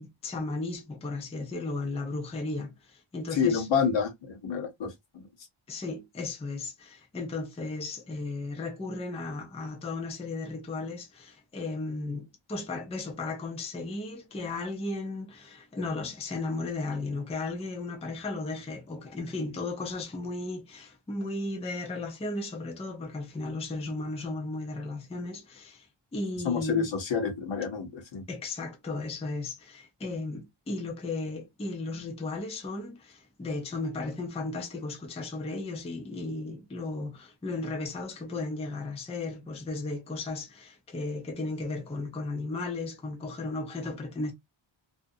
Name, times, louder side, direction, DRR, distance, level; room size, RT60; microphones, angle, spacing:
voice 1, 0.0-3.7 5.7-25.9 26.1-26.9 28.3-44.3, left 3 dB, 15° left, 0.4 m, -35 dB
voice 2, 3.3-5.3 26.4-28.2, left 6 dB, 65° left, 0.9 m, -28 dB
2.5 x 2.2 x 2.6 m
wide cardioid pair, 125°, 49 cm